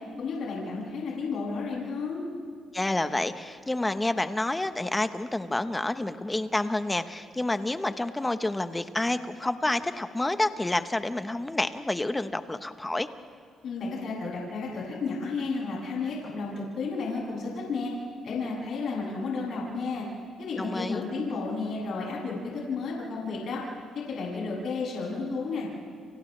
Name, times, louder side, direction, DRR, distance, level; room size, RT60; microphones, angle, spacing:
voice 1, 0.2-2.2 13.6-17.9 18.2-20.1 20.4-23.6 23.9-25.7, left 4 dB, 65° left, -4 dB, 7.8 m, -32 dB
voice 2, 2.7-13.1 20.6-21.0, left 2 dB, 15° left, 9 dB, 1.2 m, -29 dB
30.0 x 30.0 x 3.4 m, 2.3 s
cardioid pair, 90°, 0 cm